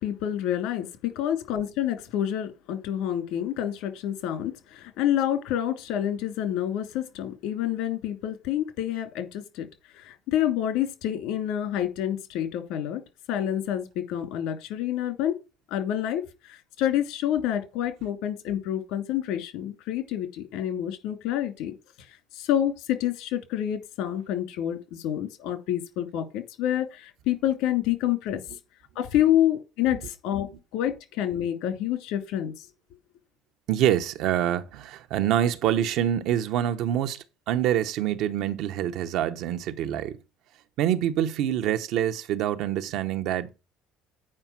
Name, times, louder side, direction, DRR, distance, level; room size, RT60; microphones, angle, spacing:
voice 1, 0.0-9.7 9.9-13.0 13.3-15.3 15.7-21.7 22.3-28.4 28.9-32.7, left 11 dB, 80° left, 2.7 m, -28 dB
voice 2, 33.7-40.2 40.8-43.5, right 11 dB, 65° right, 1.0 m, -26 dB
8.6 x 5.1 x 6.0 m
cardioid pair, 130°, 0 cm